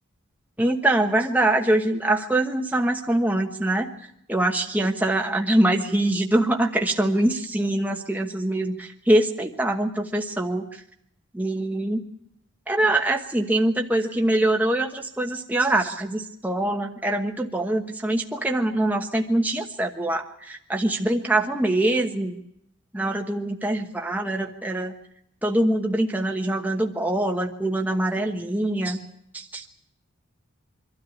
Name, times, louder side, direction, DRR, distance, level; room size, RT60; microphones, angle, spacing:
voice 1, 0.6-3.9 4.3-10.8 11.3-12.0 12.7-22.4 22.9-24.9 25.4-29.0 29.3-29.7, right 1 dB, 10° right, 2 dB, 1.2 m, -24 dB
24.0 x 13.0 x 9.9 m, 0.74 s
head